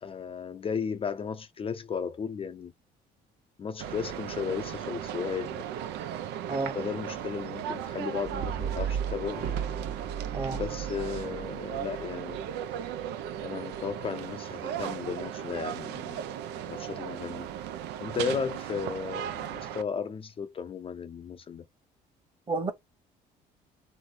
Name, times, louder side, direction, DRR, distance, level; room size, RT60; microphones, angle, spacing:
voice 1, 0.0-2.7 3.6-5.6 6.7-9.4 10.5-12.4 13.4-16.4 16.6-17.5 18.0-21.6, left 6 dB, 35° left, 0.5 m, -35 dB
sound 1, 3.8-19.8, right 10 dB, 85° right, 0.6 m, -37 dB
voice 2, 6.5-6.8 10.3-10.6 22.5-22.7, right 3 dB, 30° right, 1.3 m, -30 dB
Brass instrument, 8.2-12.5, right 8 dB, 65° right, 1.3 m, -35 dB
3.6 x 3.2 x 4.2 m
cardioid pair, 110°, 17 cm